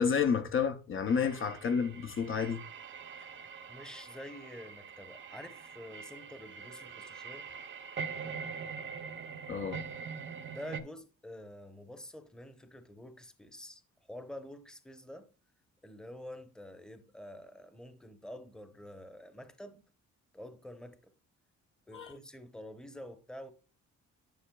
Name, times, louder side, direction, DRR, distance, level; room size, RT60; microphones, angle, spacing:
voice 1, 0.0-2.6 9.5-9.8 21.9-22.1, left 6 dB, 45° left, 0.6 m, -30 dB
sound 1, 1.1-10.8, right 6 dB, 40° right, 0.6 m, -44 dB
voice 2, 3.2-7.5 10.5-13.8 14.1-15.3 15.8-19.8 20.3-21.1 21.9-23.5, left 1 dB, ahead, 0.8 m, -48 dB
10.5 x 5.5 x 2.3 m
cardioid pair, 90°, 30 cm